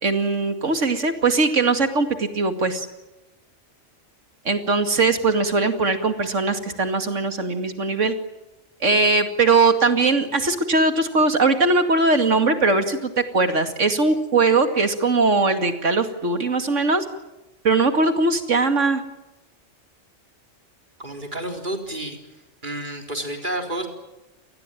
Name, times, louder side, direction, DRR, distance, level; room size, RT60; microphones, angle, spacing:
voice 1, 0.0-2.9 4.5-8.2 8.8-17.0 17.6-19.0, right 3 dB, 85° right, 7 dB, 2.7 m, -20 dB
voice 2, 21.0-22.2 22.6-23.9, right 1 dB, 40° right, 4 dB, 4.2 m, -30 dB
28.0 x 20.0 x 9.1 m, 1.0 s
omnidirectional pair, 1.2 m